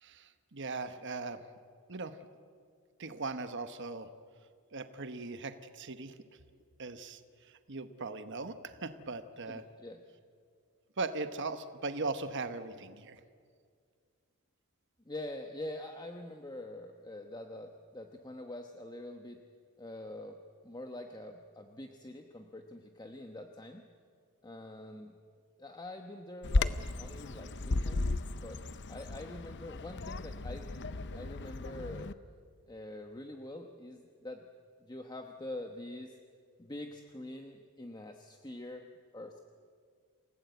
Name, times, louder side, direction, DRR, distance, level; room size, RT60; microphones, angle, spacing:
voice 1, 0.0-1.4 1.9-2.2 3.0-4.1 4.7-6.2 6.8-9.6 11.0-13.2, right 3 dB, 55° right, 10 dB, 1.1 m, -39 dB
voice 2, 9.5-10.0 15.0-19.4 19.8-20.4 20.6-23.8 24.4-25.2 25.6-28.6 28.9-30.7 31.1-32.1 32.7-34.5 34.8-36.2 36.6-39.4, left 1 dB, 20° left, 4 dB, 1.1 m, -45 dB
Bird vocalization bird call bird song, 26.4-32.1, left 2 dB, 50° left, 0.7 m, -35 dB
28.5 x 18.0 x 8.2 m, 2.1 s
head